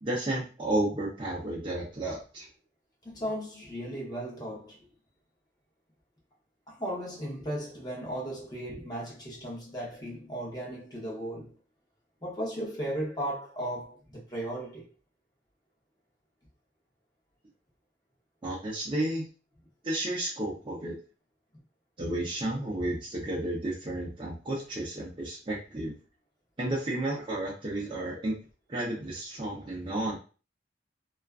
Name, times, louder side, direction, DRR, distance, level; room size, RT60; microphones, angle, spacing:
voice 1, 0.0-2.5 18.4-19.2 19.8-21.0 22.0-25.9 26.6-28.4 28.7-30.2, right 1 dB, 30° right, 0.6 m, -32 dB
voice 2, 3.0-4.8 6.7-11.5 12.2-14.9, equal, 20° left, 0.7 m, -36 dB
2.4 x 2.3 x 2.3 m
head